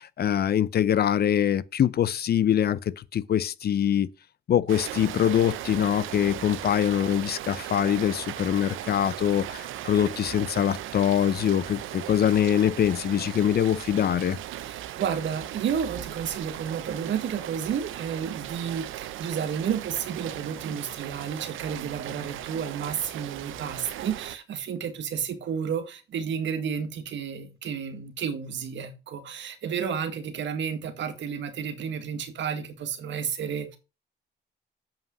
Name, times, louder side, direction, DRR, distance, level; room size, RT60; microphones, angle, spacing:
voice 1, 0.0-4.1 4.5-14.4, left 9 dB, 50° left, 0.7 m, -24 dB
Rain, 4.7-24.4, right 13 dB, 85° right, 0.8 m, -38 dB
voice 2, 14.6-33.8, right 7 dB, 70° right, 1.8 m, -31 dB
7.6 x 5.5 x 5.3 m
cardioid pair, 90°, 20 cm